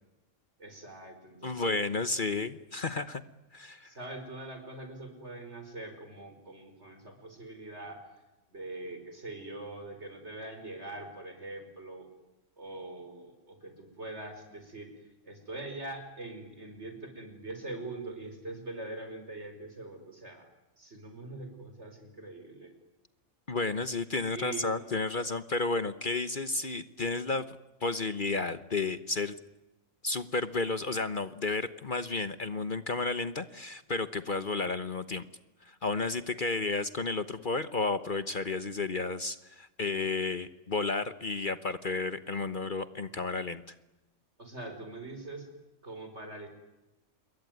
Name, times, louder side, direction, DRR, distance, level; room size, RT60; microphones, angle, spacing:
voice 1, 0.6-1.8 3.8-8.0 8.5-12.1 12.6-20.5 20.8-22.7 24.3-24.7 44.4-45.5 45.8-46.5, right 2 dB, 60° right, 6 dB, 5.7 m, -43 dB
voice 2, 1.4-3.2 3.5-3.9 23.5-27.6 27.8-29.3 30.0-35.2 35.7-43.6, left 3 dB, 40° left, 12 dB, 1.2 m, -32 dB
27.5 x 22.5 x 9.5 m, 1.0 s
omnidirectional pair, 1.3 m